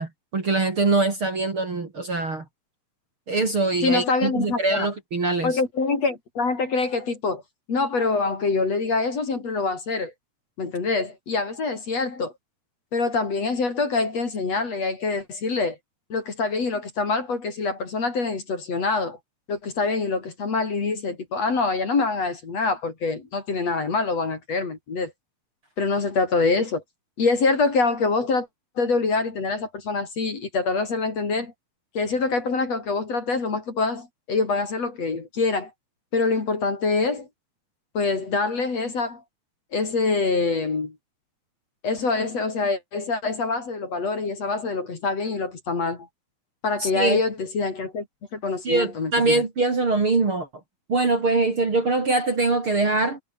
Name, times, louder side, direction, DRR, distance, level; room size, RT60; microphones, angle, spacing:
voice 1, 0.0-2.4 3.3-5.6 46.8-47.2 48.6-50.5 50.9-53.2, right 3 dB, 35° right, 3.4 m, -23 dB
voice 2, 3.8-4.9 5.4-7.4 7.7-10.1 10.6-12.3 12.9-15.8 16.1-19.2 19.5-25.1 25.8-26.8 27.2-28.5 28.8-31.5 31.9-35.7 36.1-37.3 37.9-39.2 39.7-41.0 41.8-46.1 46.6-48.1 48.3-49.4, left 4 dB, 40° left, 4.5 m, -25 dB
omnidirectional pair, 4.8 m